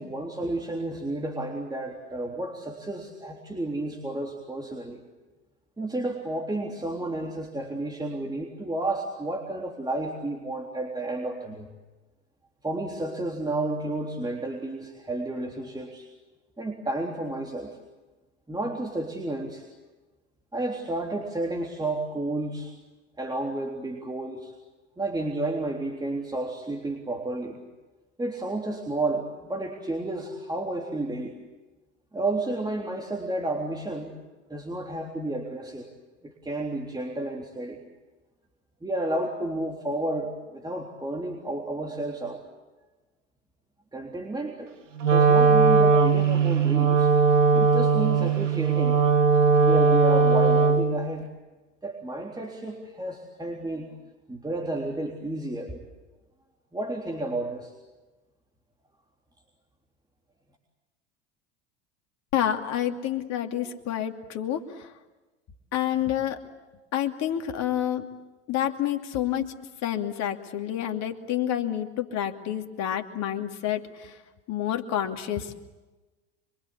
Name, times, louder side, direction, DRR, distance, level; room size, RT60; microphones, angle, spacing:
voice 1, 0.0-5.0 5.8-11.7 12.6-16.1 16.6-17.8 18.5-19.7 20.5-22.7 23.2-24.5 25.0-27.6 28.2-31.4 32.1-34.2 34.5-35.9 36.2-37.8 38.8-42.4 43.9-44.7 45.0-47.1 47.5-49.0 49.6-51.3 51.8-53.9 54.3-55.8 56.7-57.7, right 2 dB, 10° right, 1 dB, 3.6 m, -31 dB
Wind instrument woodwind instrument, 45.0-51.0, right 5 dB, 85° right, 1.9 m, -19 dB
voice 2, 62.3-64.6 65.7-66.4 66.9-68.1 68.5-69.5 69.8-74.1 74.5-75.6, left 11 dB, 45° left, 6 dB, 2.7 m, -28 dB
26.5 x 24.0 x 8.4 m, 1.2 s
hypercardioid pair, 85°, 37 cm